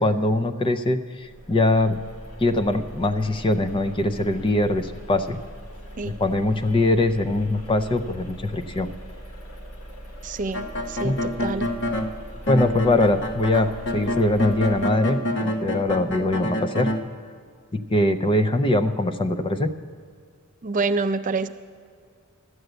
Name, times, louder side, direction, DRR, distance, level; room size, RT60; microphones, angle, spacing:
voice 1, 0.0-2.0 2.4-5.4 6.0-8.9 11.0-11.2 12.5-16.9 17.7-19.7, left 2 dB, 25° left, 10 dB, 0.5 m, -22 dB
sound 1, 1.2-14.9, equal, 90° left, 1.5 m, -41 dB
voice 2, 10.2-11.7 20.6-21.5, right 3 dB, 35° right, 9 dB, 0.4 m, -27 dB
sound 2, 10.5-12.1 12.5-17.0, left 1 dB, 55° left, 1.0 m, -27 dB
12.5 x 7.9 x 7.9 m, 2.1 s
head